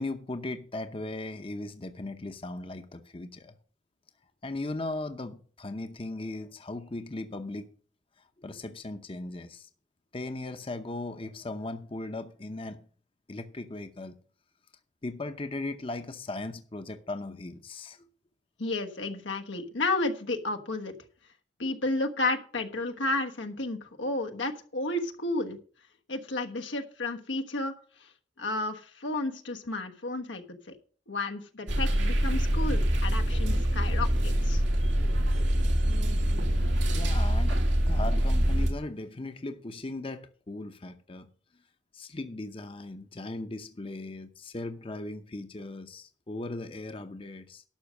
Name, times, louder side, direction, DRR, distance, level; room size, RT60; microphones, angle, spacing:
voice 1, 0.0-3.5 4.4-7.7 8.4-9.7 10.1-12.8 13.3-14.1 15.0-18.1 36.9-41.3 41.9-47.6, left 2 dB, 30° left, 0.7 m, -38 dB
voice 2, 18.6-20.9 21.6-25.6 26.1-27.7 28.4-30.8 31.1-34.6, left 2 dB, 90° left, 1.3 m, -32 dB
sound 1, 31.7-38.7, equal, 85° right, 2.3 m, -25 dB
11.5 x 6.3 x 6.3 m
head